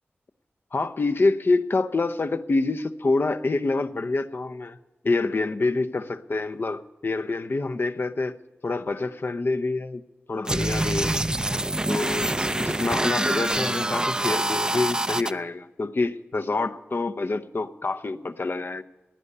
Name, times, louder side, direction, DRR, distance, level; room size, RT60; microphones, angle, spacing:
voice 1, 0.7-4.8 5.0-8.4 8.6-10.0 10.3-11.2 11.9-18.8, left 3 dB, 55° left, 0.8 m, -26 dB
sound 1, 10.5-15.3, right 1 dB, 20° right, 0.5 m, -25 dB
16.5 x 9.8 x 6.7 m
cardioid pair, 55°, 4 cm